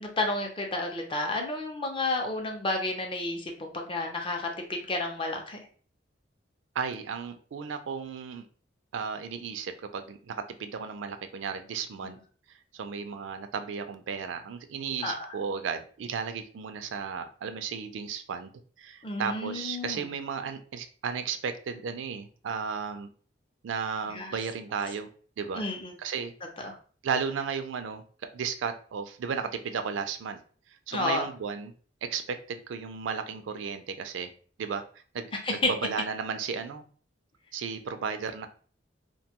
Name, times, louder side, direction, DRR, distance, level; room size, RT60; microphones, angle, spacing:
voice 1, 0.0-5.6 12.0-12.1 15.0-15.1 19.0-20.1 24.1-24.3 25.5-25.9 26.6-26.7 30.9-31.3 35.4-35.7, left 2 dB, 30° left, 2 dB, 0.5 m, -31 dB
voice 2, 6.7-8.5 8.9-12.2 12.7-23.1 23.6-25.1 25.4-25.6 26.0-26.3 27.0-28.0 28.3-30.4 30.9-31.7 32.0-34.3 34.6-34.8 35.1-35.3 35.6-36.8 37.5-38.5, right 6 dB, 90° right, 8 dB, 0.4 m, -34 dB
2.6 x 2.2 x 2.8 m, 0.43 s
head